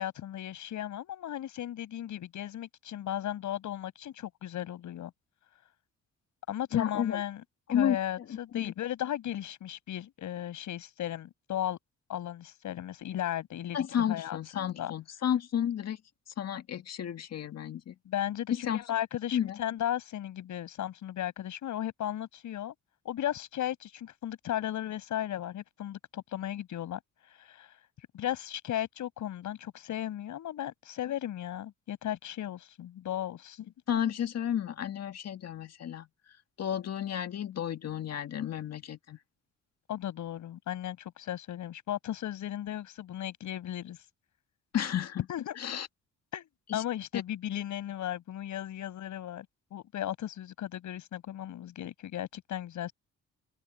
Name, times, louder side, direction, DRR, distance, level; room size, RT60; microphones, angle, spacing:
voice 1, 0.0-5.1 6.5-7.4 7.7-11.8 12.1-13.8 14.1-14.9 18.0-22.7 23.0-27.0 27.4-27.7 28.1-33.7 39.9-44.0 45.3-45.6 46.3-49.5 49.7-52.9, left 11 dB, 75° left, 7.7 m, -36 dB
voice 2, 6.7-7.2 7.7-8.0 8.3-8.7 13.7-16.0 16.4-17.9 18.7-18.8 19.3-19.6 33.9-36.1 36.6-39.2 44.7-45.3 45.6-45.9 46.7-46.8 47.1-47.2, left 9 dB, 55° left, 1.9 m, -32 dB
open air
cardioid pair, 90°, 30 cm